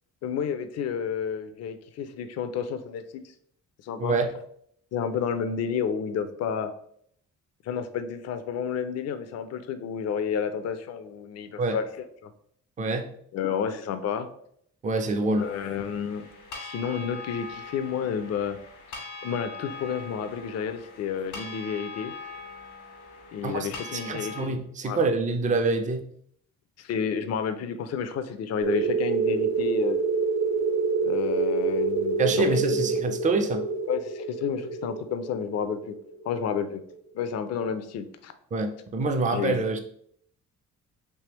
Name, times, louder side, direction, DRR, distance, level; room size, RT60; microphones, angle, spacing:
voice 1, 0.2-3.2 3.8-4.2 4.9-6.7 7.6-12.3 13.3-14.3 15.4-16.3 16.6-18.6 19.2-22.1 23.3-25.0 26.8-30.0 31.0-32.5 33.9-36.0 36.2-36.8 37.1-38.3 39.3-39.6, left 7 dB, 55° left, 0.5 m, -30 dB
voice 2, 4.0-4.3 11.6-11.8 12.8-13.1 14.8-15.5 23.4-26.1 32.2-33.6 38.5-39.8, right 3 dB, 25° right, 0.4 m, -26 dB
sound 1, 15.4-24.4, left 4 dB, 85° left, 1.3 m, -42 dB
sound 2, 28.6-36.9, right 4 dB, 70° right, 0.8 m, -27 dB
3.4 x 2.8 x 2.9 m
cardioid pair, 90°, 30 cm